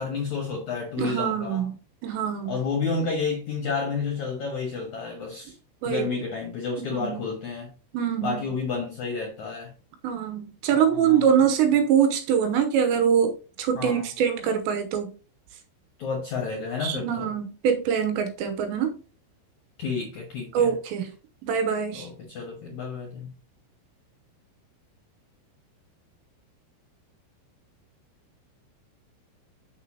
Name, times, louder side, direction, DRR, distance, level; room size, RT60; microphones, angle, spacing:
voice 1, 0.0-1.7 2.5-5.6 5.9-7.7 8.2-9.7 10.7-11.3 13.7-14.1 16.0-17.3 19.8-20.7 21.9-23.3, left 4 dB, 65° left, 1.8 m, -30 dB
voice 2, 1.0-1.7 2.0-2.6 5.8-6.1 6.9-7.2 7.9-8.4 10.0-13.3 13.6-15.1 16.8-19.0 20.5-21.1 21.4-22.1, right 8 dB, 80° right, 2.9 m, -24 dB
6.8 x 6.5 x 2.8 m
omnidirectional pair, 5.5 m